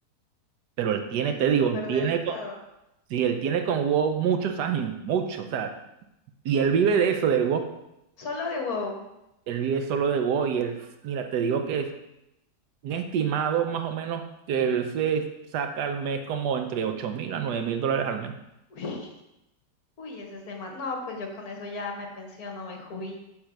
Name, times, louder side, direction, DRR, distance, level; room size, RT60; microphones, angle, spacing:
voice 1, 0.8-2.4 3.1-5.7 6.4-7.6 9.5-11.9 12.8-18.3, right 7 dB, 75° right, 6 dB, 1.3 m, -26 dB
voice 2, 1.8-2.6 8.2-9.0 18.7-19.1 20.0-23.2, left 3 dB, 60° left, 2 dB, 1.6 m, -35 dB
7.2 x 3.7 x 6.3 m, 0.87 s
omnidirectional pair, 1.8 m